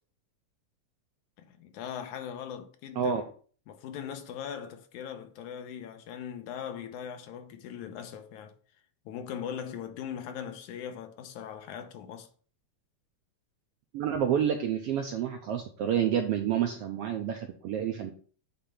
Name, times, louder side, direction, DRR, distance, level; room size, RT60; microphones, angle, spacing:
voice 1, 1.4-3.2 3.7-8.5 9.1-12.3, left 8 dB, 80° left, 2.3 m, -40 dB
voice 2, 13.9-18.1, right 9 dB, 80° right, 1.4 m, -29 dB
8.5 x 3.4 x 5.6 m
omnidirectional pair, 3.4 m